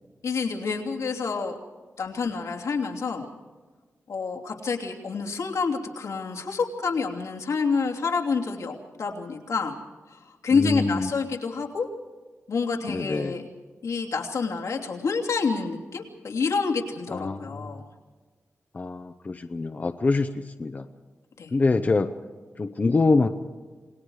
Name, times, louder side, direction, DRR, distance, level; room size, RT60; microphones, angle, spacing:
voice 1, 0.2-1.6 2.0-3.3 4.1-9.7 10.1-11.9 12.5-13.4 13.8-17.9 21.4-21.5, left 5 dB, 80° left, 0 dB, 3.0 m, -28 dB
voice 2, 10.5-11.1 12.9-13.4 17.1-17.8 18.7-20.9 21.5-22.1 22.6-23.3, left 3 dB, 30° left, 8 dB, 0.7 m, -25 dB
28.0 x 20.0 x 4.8 m, 1.4 s
wide cardioid pair, 165°, 5 cm